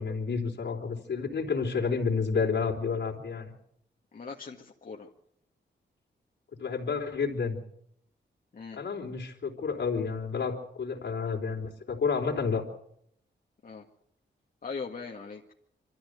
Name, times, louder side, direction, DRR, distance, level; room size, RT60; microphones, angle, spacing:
voice 1, 0.0-3.5 6.6-7.6 8.7-12.6, left 5 dB, 70° left, 0 dB, 3.8 m, -30 dB
voice 2, 4.1-5.1 8.5-8.8 13.6-13.8 14.6-15.4, left 4 dB, 50° left, 0 dB, 1.8 m, -40 dB
25.0 x 14.0 x 8.1 m, 0.72 s
cardioid pair, 80°, 19 cm